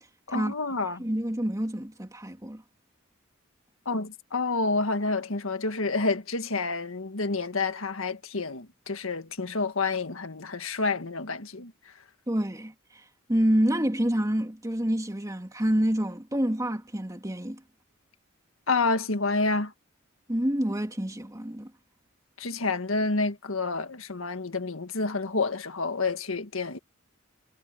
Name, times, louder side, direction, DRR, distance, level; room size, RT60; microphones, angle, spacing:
voice 1, 0.3-1.0 3.8-11.7 18.7-19.7 22.4-26.8, left 3 dB, 80° left, 1.7 m, -29 dB
voice 2, 1.0-2.6 12.3-12.7 13.3-17.6 20.3-21.7, equal, 15° right, 2.5 m, -27 dB
head